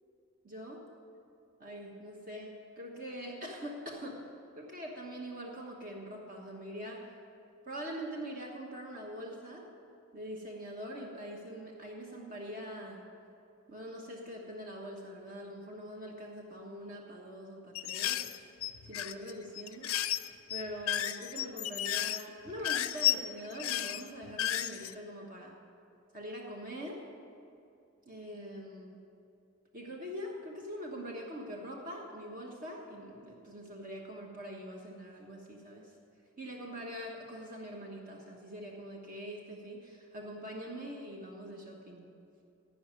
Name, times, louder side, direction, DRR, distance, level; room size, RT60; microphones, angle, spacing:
voice 1, 0.4-0.8 1.6-4.2 4.6-7.1 7.6-9.6 10.1-13.0 13.7-18.4 18.9-25.6 26.1-27.0 28.1-29.0 29.7-35.9 36.4-42.0, equal, 45° right, -1 dB, 1.2 m, -43 dB
sound 1, 17.7-24.9, left 12 dB, 80° left, 0.5 m, -33 dB
16.0 x 5.5 x 9.6 m, 2.7 s
head